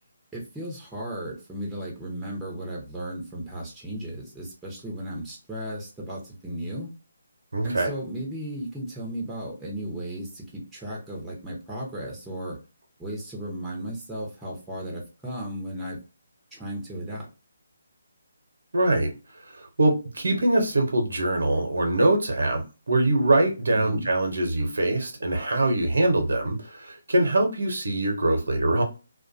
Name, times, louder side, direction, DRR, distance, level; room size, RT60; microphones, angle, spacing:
voice 1, 0.3-6.9 7.6-12.6 13.0-16.0 16.5-17.3 23.7-24.1, right 1 dB, 5° right, 0.7 m, -35 dB
voice 2, 7.5-7.9 18.7-19.1 19.6-28.8, right 2 dB, 65° right, 0.8 m, -23 dB
2.5 x 2.2 x 2.5 m
figure-of-eight pair, 145°, 0 cm